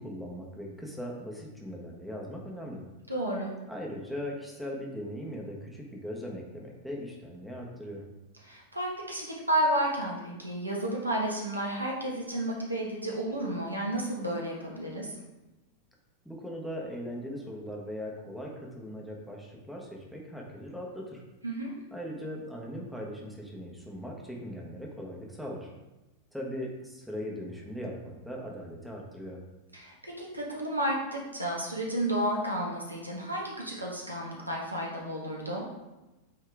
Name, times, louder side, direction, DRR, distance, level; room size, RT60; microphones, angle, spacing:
voice 1, 0.0-2.8 3.7-8.0 16.2-21.2 21.9-25.7 26.3-29.4, equal, ahead, -3 dB, 1.3 m, -39 dB
voice 2, 3.1-3.5 8.4-15.1 21.4-21.7 29.7-35.7, right 1 dB, 85° right, -2 dB, 1.3 m, -32 dB
8.3 x 3.6 x 3.5 m, 1.1 s
figure-of-eight pair, 90°, 0 cm